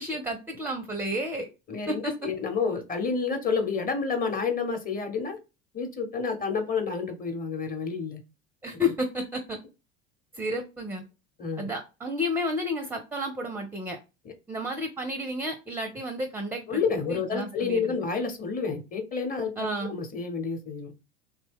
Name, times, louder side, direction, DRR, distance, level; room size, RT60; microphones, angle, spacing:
voice 1, 0.0-1.5 1.9-2.1 8.6-9.6 10.3-11.0 11.6-14.0 14.5-16.8 17.1-17.8 19.6-19.9, left 1 dB, 5° right, 6 dB, 0.5 m, -31 dB
voice 2, 1.7-5.4 5.7-8.2 11.4-11.7 16.7-19.5 19.8-20.9, left 5 dB, 30° left, 5 dB, 1.0 m, -29 dB
2.8 x 2.2 x 3.5 m, 0.28 s
hypercardioid pair, 80°, 30 cm